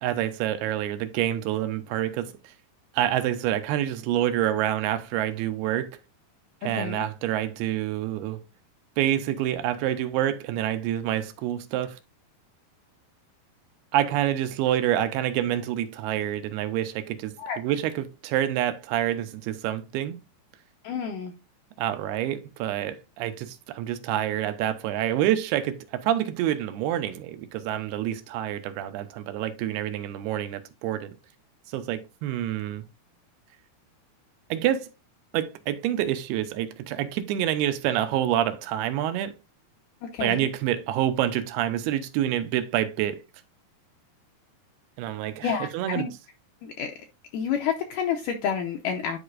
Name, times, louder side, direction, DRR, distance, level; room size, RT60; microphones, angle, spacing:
voice 1, 0.0-2.5 2.9-5.9 6.6-8.4 9.0-12.0 13.9-20.2 21.8-31.1 31.7-32.8 34.5-34.9 35.3-39.3 40.2-43.2 45.0-46.1, right 12 dB, 80° right, 2.6 m, -27 dB
voice 2, 6.6-7.0 17.4-17.6 20.8-21.3 40.0-40.5 45.4-46.1 46.6-46.9 47.3-49.2, left 7 dB, 85° left, 1.8 m, -29 dB
11.0 x 4.8 x 2.4 m
omnidirectional pair, 4.6 m